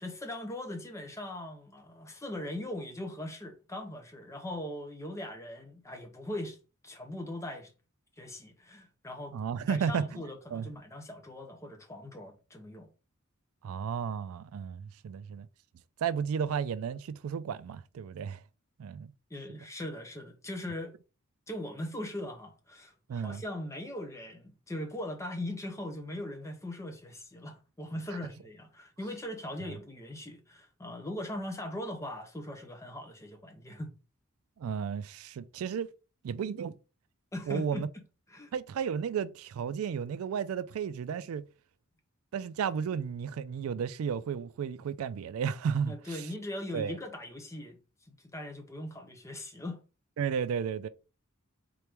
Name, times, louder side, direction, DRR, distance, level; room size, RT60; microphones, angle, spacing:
voice 1, 0.0-6.6 6.8-7.7 8.2-9.4 9.7-12.9 19.3-20.9 21.5-33.9 37.3-37.8 38.3-38.5 45.9-47.8 48.1-49.8, left 1 dB, 15° left, 0.7 m, -40 dB
voice 2, 9.3-10.2 10.5-10.7 13.6-15.5 16.0-18.4 18.8-19.1 19.5-19.6 23.1-23.4 28.1-28.2 29.7-29.8 34.6-35.9 36.2-36.7 37.5-37.9 38.5-41.5 42.3-46.3 46.7-47.0 50.2-50.9, right 7 dB, 85° right, 0.3 m, -33 dB
3.8 x 3.0 x 3.4 m
head